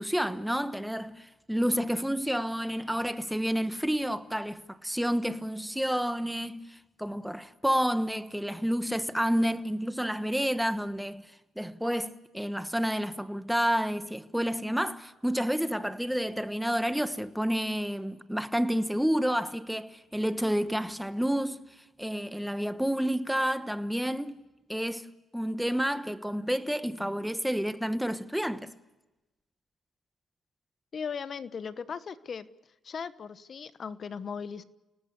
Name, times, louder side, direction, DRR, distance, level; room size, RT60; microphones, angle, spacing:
voice 1, 0.0-11.3 11.6-21.6 22.0-24.4 24.7-25.1 25.3-28.7, equal, ahead, 1.2 m, -30 dB
voice 2, 30.9-32.5 32.8-34.6, left 6 dB, 50° left, 1.1 m, -37 dB
29.0 x 18.5 x 6.8 m
cardioid pair, 90°, 0 cm